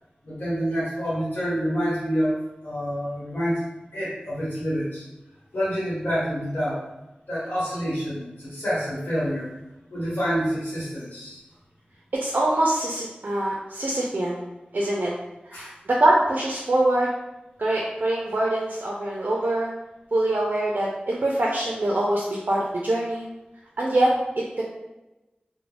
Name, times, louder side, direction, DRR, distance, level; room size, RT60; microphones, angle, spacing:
voice 1, 0.2-3.6 3.9-5.0 5.5-6.8 7.3-9.5 9.9-11.4 15.5-15.7, equal, 70° left, -9 dB, 1.0 m, -27 dB
voice 2, 12.2-14.4 14.7-15.1 15.5-17.1 17.6-19.7 20.1-23.3 23.8-24.6, right 1 dB, 65° right, -3 dB, 0.4 m, -24 dB
2.3 x 2.1 x 3.2 m, 0.99 s
wide cardioid pair, 45°, 3 cm